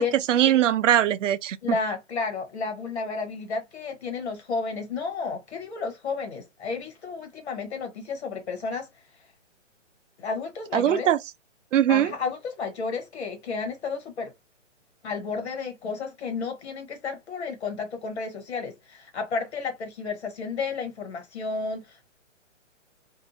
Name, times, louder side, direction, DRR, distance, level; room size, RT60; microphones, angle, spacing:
voice 1, 0.3-1.8 10.7-11.2 11.7-12.1, right 11 dB, 75° right, 0.5 m, -21 dB
voice 2, 1.6-8.9 10.2-11.1 11.9-14.3 15.0-22.1, left 4 dB, 60° left, 1.4 m, -32 dB
2.6 x 2.1 x 2.6 m
hypercardioid pair, 155°, 37 cm